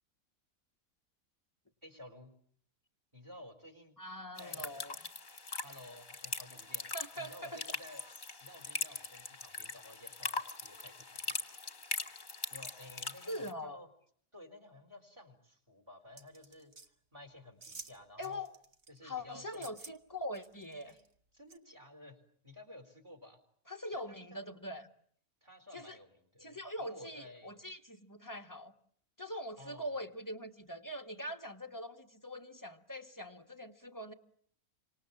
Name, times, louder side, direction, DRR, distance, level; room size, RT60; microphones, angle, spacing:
voice 1, 1.8-2.3 3.1-4.0 4.4-4.7 5.6-8.0 8.4-11.4 12.5-13.9 14.3-18.5 18.9-19.7 20.9-21.0 21.3-22.2 22.4-23.4 23.9-24.5 25.4-27.6 29.6-29.9, left 1 dB, 20° right, 6 dB, 4.6 m, -54 dB
voice 2, 4.0-5.0 6.9-7.6 13.3-13.8 18.2-18.5 19.0-20.9 23.7-24.9 25.7-26.0 26.4-28.7 29.2-34.1, left 1 dB, 15° left, 5 dB, 1.5 m, -43 dB
sound 1, 4.4-13.5, left 3 dB, 35° left, 1.7 m, -41 dB
sound 2, 16.2-16.9 17.6-18.0 18.2-19.0 19.5-19.9 20.3-21.1 21.5-21.6, right 3 dB, 45° right, 1.7 m, -50 dB
30.0 x 26.0 x 7.3 m, 0.63 s
omnidirectional pair, 1.5 m